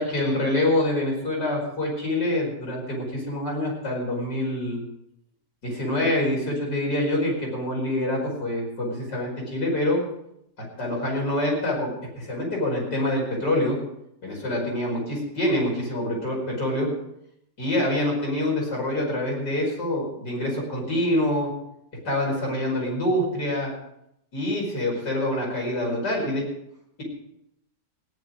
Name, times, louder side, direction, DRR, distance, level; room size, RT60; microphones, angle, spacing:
voice 1, 0.0-4.8 5.6-10.0 10.8-11.9 12.2-13.8 14.2-16.9 17.6-21.5 22.0-23.7 24.3-26.4, left 1 dB, 75° left, -2 dB, 5.6 m, -26 dB
17.5 x 10.5 x 5.1 m, 0.77 s
omnidirectional pair, 1.8 m